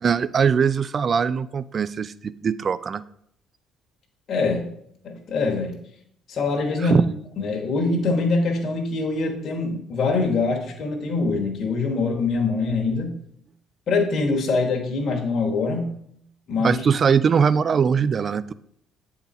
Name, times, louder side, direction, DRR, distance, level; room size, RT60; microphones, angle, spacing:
voice 1, 0.0-3.0 6.9-7.0 16.6-18.5, right 6 dB, 45° right, 16 dB, 0.4 m, -21 dB
voice 2, 4.3-4.7 5.0-5.8 6.3-7.1 7.4-13.2 13.9-15.9 16.5-16.8, left 3 dB, 55° left, 1 dB, 1.2 m, -24 dB
7.9 x 3.9 x 4.2 m, 0.69 s
supercardioid pair, 65°, 0 cm